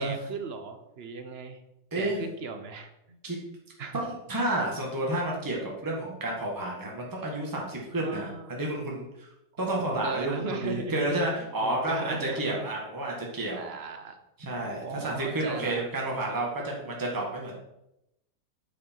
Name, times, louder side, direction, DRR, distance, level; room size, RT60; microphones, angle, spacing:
voice 1, 0.0-1.6 1.9-3.2 3.8-4.0 8.0-8.5 9.5-12.6 13.6-14.2 14.8-15.8, right 4 dB, 45° right, 7 dB, 0.9 m, -38 dB
voice 2, 1.9-2.2 3.2-3.4 3.9-9.3 9.6-13.7 14.4-17.6, right 1 dB, 10° right, -2 dB, 1.6 m, -30 dB
8.4 x 7.1 x 4.5 m, 0.87 s
omnidirectional pair, 1.9 m